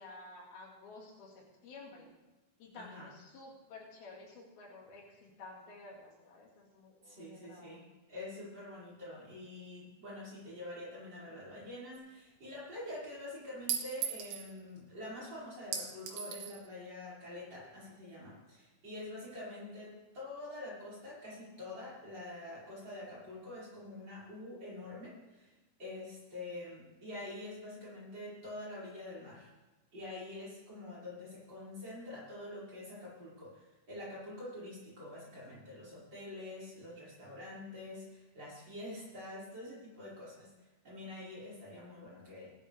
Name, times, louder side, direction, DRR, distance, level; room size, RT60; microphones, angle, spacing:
voice 1, 0.0-2.1 2.6-7.8, left 3 dB, 80° left, -1 dB, 4.1 m, -52 dB
voice 2, 2.7-3.1 7.0-25.5 25.8-29.5 29.9-42.5, left 1 dB, 30° right, -8 dB, 6.3 m, -46 dB
Chink clink, 11.9-12.0 13.7-14.5 15.7-16.6, right 7 dB, 85° right, 3.5 m, -38 dB
18.5 x 11.5 x 3.5 m, 1.1 s
omnidirectional pair, 4.3 m